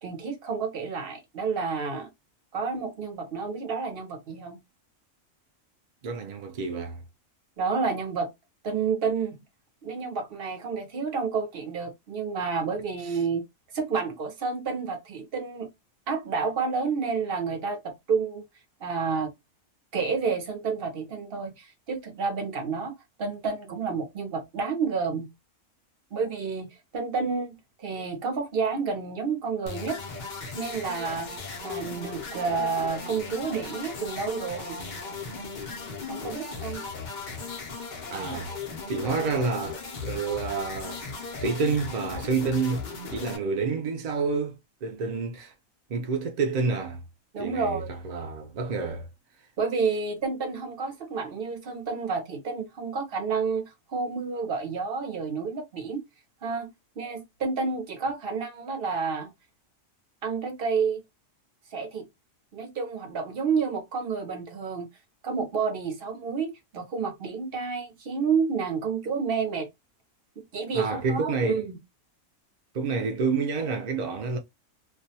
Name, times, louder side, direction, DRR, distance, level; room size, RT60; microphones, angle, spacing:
voice 1, 0.0-2.1 2.5-4.6 7.6-8.3 8.6-9.4 9.8-13.4 13.7-15.7 16.1-18.4 18.8-19.3 19.9-22.9 23.2-25.3 26.1-26.7 26.9-30.0 30.6-31.3 31.6-34.8 36.1-36.8 47.3-47.9 49.6-56.0 56.4-56.7 57.0-59.3 60.2-61.0 61.7-62.1 62.5-64.9 65.2-69.7 70.5-71.8, right 5 dB, 50° right, 0.8 m, -30 dB
voice 2, 6.0-7.0 38.1-38.5 38.9-41.0 41.4-42.8 43.1-45.5 45.9-47.0 47.4-49.1 70.7-71.6 72.7-74.4, right 4 dB, 65° right, 0.4 m, -28 dB
sound 1, 29.7-43.4, left 4 dB, 50° left, 0.6 m, -37 dB
2.5 x 2.2 x 2.7 m
omnidirectional pair, 1.4 m